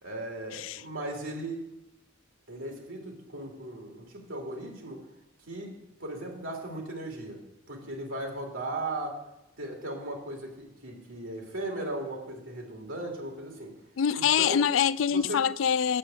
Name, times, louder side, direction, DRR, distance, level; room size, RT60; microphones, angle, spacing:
voice 1, 0.0-1.6 2.5-5.0 5.5-5.7 6.0-9.2 9.6-13.7 14.2-14.6 15.1-15.4, right 1 dB, 85° right, 2.9 m, -37 dB
voice 2, 14.0-16.0, left 8 dB, 70° left, 0.3 m, -25 dB
8.7 x 7.9 x 7.7 m
head